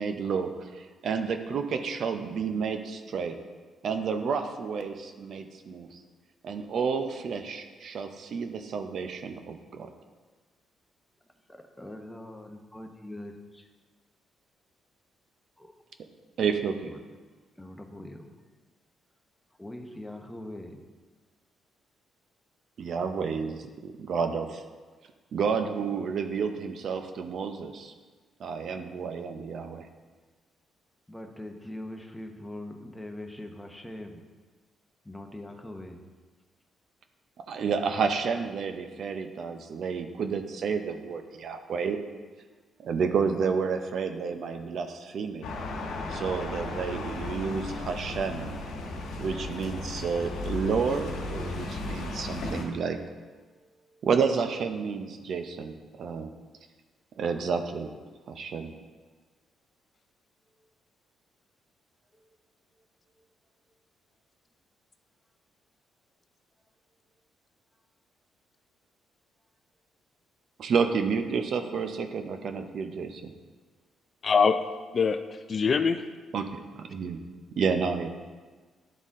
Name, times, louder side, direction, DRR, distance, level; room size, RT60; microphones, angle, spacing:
voice 1, 0.0-3.4 3.8-6.0 6.4-9.9 16.4-16.9 22.8-24.6 25.3-27.9 28.4-29.9 37.5-42.0 42.8-45.4 46.1-48.6 49.2-53.0 54.0-56.3 57.2-57.9 58.3-58.7 70.6-73.3 76.3-77.2 77.6-78.1, right 5 dB, 60° right, 7 dB, 0.6 m, -30 dB
voice 2, 11.5-13.7 15.6-15.7 16.8-17.0 17.6-18.3 19.6-20.8 28.7-29.1 31.1-34.2 35.0-36.0 53.5-54.2 60.6-60.7 62.2-62.4 63.1-63.3, left 1 dB, 5° left, 3 dB, 0.9 m, -43 dB
sound 1, 45.4-52.6, left 2 dB, 90° left, 1.3 m, -35 dB
voice 3, 74.2-74.6 74.9-76.0, left 5 dB, 45° left, 9 dB, 0.4 m, -23 dB
11.0 x 4.0 x 3.7 m, 1.4 s
cardioid pair, 90°, 0 cm